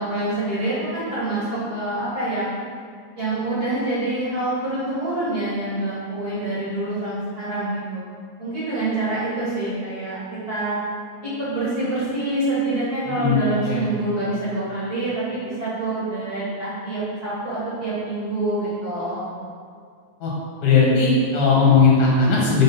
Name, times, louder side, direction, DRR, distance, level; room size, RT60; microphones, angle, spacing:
voice 1, 0.0-2.5 3.2-8.0 8.4-10.2 10.5-10.8 11.2-19.3, right 2 dB, 40° right, -10 dB, 1.7 m, -26 dB
voice 2, 13.1-13.9 20.2-20.3 20.6-22.6, left 4 dB, 65° left, -5 dB, 2.3 m, -17 dB
6.2 x 4.3 x 5.5 m, 2.1 s
omnidirectional pair, 3.4 m